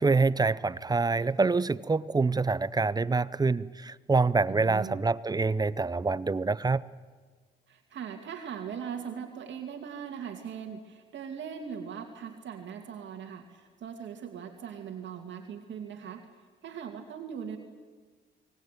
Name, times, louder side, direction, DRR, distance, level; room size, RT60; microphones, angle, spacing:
voice 1, 0.0-6.8, right 4 dB, 20° right, 19 dB, 0.6 m, -26 dB
voice 2, 4.5-5.0 7.7-16.2 16.6-17.6, right 7 dB, 65° right, 4 dB, 2.4 m, -40 dB
24.5 x 19.0 x 9.2 m, 1.4 s
cardioid pair, 90°, 20 cm